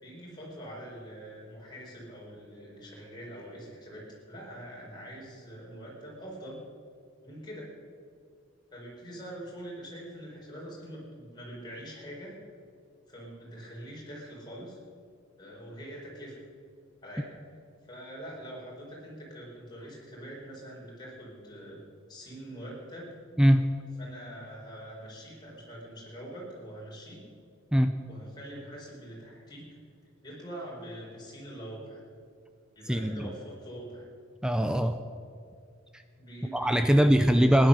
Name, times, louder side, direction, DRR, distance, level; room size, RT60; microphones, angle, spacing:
voice 1, 0.0-6.6 7.2-7.7 8.7-12.3 13.1-14.8 15.4-16.4 17.0-17.3 17.8-21.8 22.1-23.1 24.0-27.2 28.1-29.7 30.2-32.0 32.7-34.1 36.1-37.7, right 1 dB, 20° left, -4 dB, 4.5 m, -44 dB
voice 2, 23.4-23.8 27.7-28.0 32.9-33.3 34.4-35.0 35.9-36.0 36.5-37.7, equal, 5° right, 8 dB, 0.4 m, -22 dB
16.0 x 11.0 x 6.6 m, 2.2 s
head